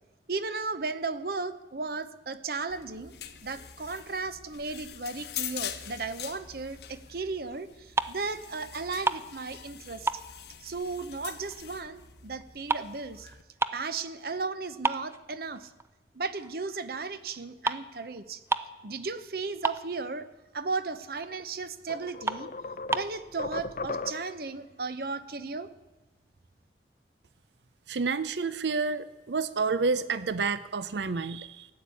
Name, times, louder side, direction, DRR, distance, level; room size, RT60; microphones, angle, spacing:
voice 1, 0.3-3.1 3.4-10.1 10.6-13.4 13.7-15.7 16.1-18.4 18.8-20.3 20.5-22.5 22.9-25.7, right 4 dB, 55° right, 13 dB, 0.9 m, -35 dB
sound 1, 2.7-13.4, left 10 dB, 65° left, 1.0 m, -43 dB
sound 2, 7.7-8.4 8.7-9.8 10.1-11.6 11.9-14.0 14.4-14.5 14.8-15.9 16.3-16.5 17.3-17.4 17.6-17.9 18.2-18.3 18.5-18.9 19.2-19.3 19.4-20.3 20.7-20.8 21.2-21.3 21.8-21.9 22.2-23.2, right 3 dB, 15° right, 0.4 m, -32 dB
sound 3, 21.3-21.4 21.9-24.5, left 3 dB, 45° left, 0.6 m, -36 dB
voice 2, 27.9-31.7, right 4 dB, 80° right, 15 dB, 0.6 m, -29 dB
14.0 x 9.5 x 8.4 m, 1.1 s
head